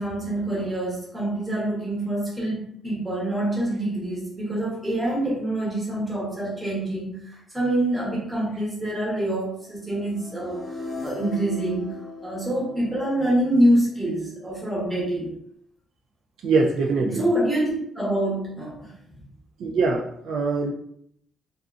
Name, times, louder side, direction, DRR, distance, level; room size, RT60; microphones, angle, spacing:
voice 1, 0.0-10.6 11.0-15.3 17.0-19.2, right 1 dB, 5° right, -6 dB, 0.9 m, -26 dB
sound 1, 9.9-13.9, left 3 dB, 30° left, 0.6 m, -38 dB
voice 2, 16.4-17.3 19.6-20.7, right 4 dB, 70° right, 0 dB, 0.3 m, -23 dB
2.4 x 2.3 x 2.5 m, 0.70 s
cardioid pair, 160°, 0 cm